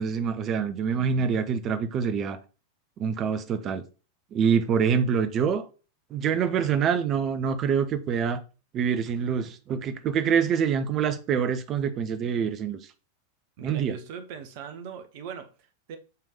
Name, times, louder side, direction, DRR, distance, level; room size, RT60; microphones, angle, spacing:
voice 1, 0.0-2.4 3.0-3.8 4.3-5.7 6.1-8.4 8.7-12.8 13.6-14.0, right 7 dB, 30° right, 0.9 m, -25 dB
voice 2, 13.6-16.0, right 7 dB, 50° right, 1.2 m, -40 dB
8.3 x 3.6 x 4.9 m
figure-of-eight pair, 90°, 0 cm